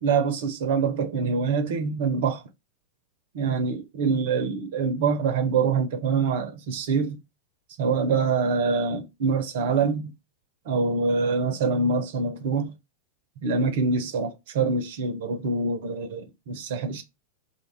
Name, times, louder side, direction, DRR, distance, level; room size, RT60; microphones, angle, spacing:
voice 1, 0.0-2.4 3.3-7.2 7.8-10.1 10.7-12.7 13.4-17.0, right 4 dB, 55° right, 0.4 m, -25 dB
2.3 x 2.2 x 3.1 m
figure-of-eight pair, 90°, 0 cm